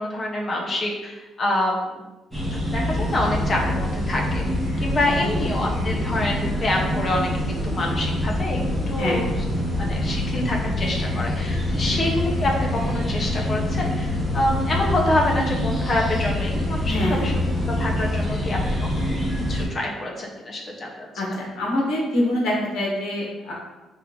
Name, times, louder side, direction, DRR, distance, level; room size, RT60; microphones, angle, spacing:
voice 1, 0.0-1.9 2.7-4.5 4.8-8.6 8.9-9.3 9.8-17.3 17.7-18.6 18.9-19.1 19.5-21.1, left 1 dB, 30° left, 0 dB, 0.6 m, -26 dB
sound 1, 2.3-19.6, left 1 dB, 5° left, 0.9 m, -25 dB
voice 2, 9.0-9.3 11.8-12.0 16.9-17.3 21.2-23.5, left 1 dB, 80° left, -3 dB, 1.3 m, -25 dB
3.6 x 2.5 x 4.5 m, 1.1 s
cardioid pair, 165°, 0 cm